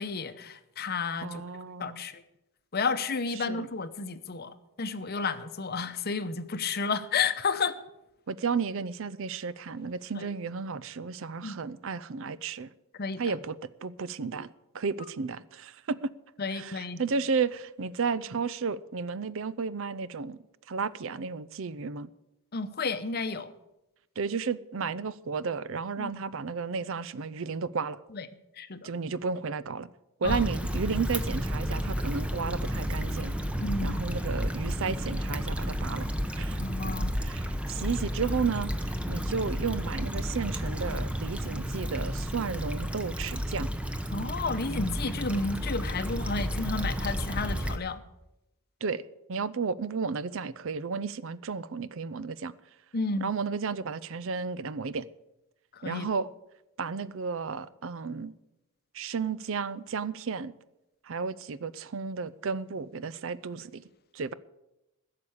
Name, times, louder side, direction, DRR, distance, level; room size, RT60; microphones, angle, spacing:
voice 1, 0.0-1.4 1.8-2.2 2.7-7.7 10.2-10.3 11.4-11.6 12.9-13.3 16.4-17.0 22.5-23.5 26.0-26.2 28.1-28.3 28.6-28.8 30.2-30.4 33.6-34.0 36.6-37.1 44.1-48.0 52.9-53.3 55.7-56.1, left 4 dB, 45° left, 0.8 m, -32 dB
voice 2, 1.2-2.0 3.4-3.7 8.3-12.7 13.2-13.6 13.8-16.1 16.5-20.4 20.7-22.1 24.2-28.0 28.8-29.9 30.2-33.3 33.8-36.1 36.4-36.6 37.2-43.7 48.8-52.5 53.2-55.1 55.8-56.3 56.8-58.3 58.9-60.5 61.0-63.8 64.1-64.3, right 5 dB, 60° right, 0.5 m, -33 dB
Stream / Traffic noise roadway noise / Trickle dribble, 30.3-47.8, equal, 5° right, 0.8 m, -32 dB
15.5 x 6.8 x 8.6 m
head